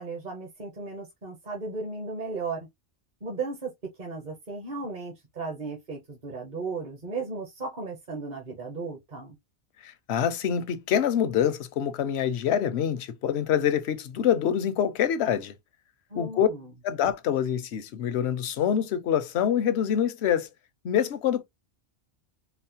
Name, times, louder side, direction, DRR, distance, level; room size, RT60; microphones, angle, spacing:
voice 1, 0.0-2.7 3.2-3.7 4.0-9.3 16.1-16.7, right 4 dB, 45° right, 0.9 m, -35 dB
voice 2, 9.8-15.5 16.1-16.5 16.8-20.5 20.8-21.4, left 9 dB, 75° left, 0.8 m, -25 dB
4.1 x 2.0 x 2.7 m
omnidirectional pair, 1.1 m